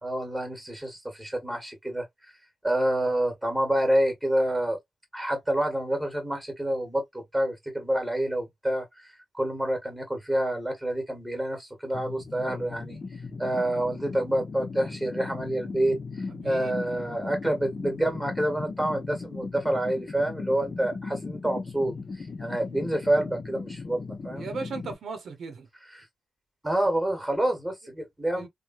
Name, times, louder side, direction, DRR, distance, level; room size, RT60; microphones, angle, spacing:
voice 1, 0.0-2.3 2.6-4.8 5.1-13.0 13.4-24.5 25.9-26.0 26.6-28.5, right 1 dB, 5° right, 1.3 m, -28 dB
sound 1, 11.9-24.9, left 4 dB, 40° left, 0.6 m, -38 dB
voice 2, 16.4-16.7 24.4-25.7 28.3-28.5, right 4 dB, 75° right, 0.8 m, -36 dB
3.2 x 2.2 x 2.5 m
cardioid pair, 110°, 0 cm